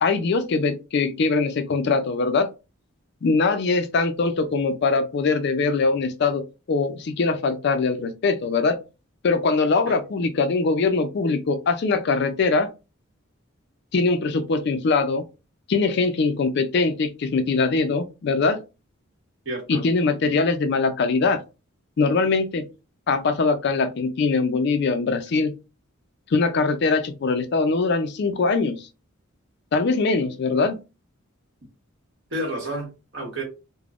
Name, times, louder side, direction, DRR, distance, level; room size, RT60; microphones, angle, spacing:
voice 1, 0.0-2.5 3.2-6.4 6.7-8.8 9.2-12.7 13.9-15.2 15.7-18.6 19.7-21.4 22.0-22.7 23.1-25.5 26.3-28.9 29.7-30.8, left 4 dB, 55° left, 0.4 m, -22 dB
voice 2, 19.4-19.8 32.3-33.4, right 1 dB, 60° right, 1.3 m, -30 dB
3.4 x 2.1 x 2.4 m
head